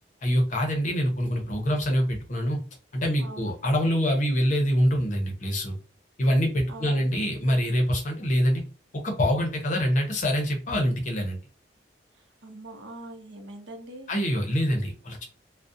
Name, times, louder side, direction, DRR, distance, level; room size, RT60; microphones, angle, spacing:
voice 1, 0.2-2.6 2.9-5.8 6.2-8.6 8.9-11.4 14.1-15.2, equal, 40° left, 1 dB, 0.6 m, -25 dB
voice 2, 3.2-3.5 6.7-7.1 12.1-14.1, right 1 dB, 85° right, 4 dB, 0.6 m, -43 dB
2.4 x 2.0 x 2.6 m, 0.35 s
head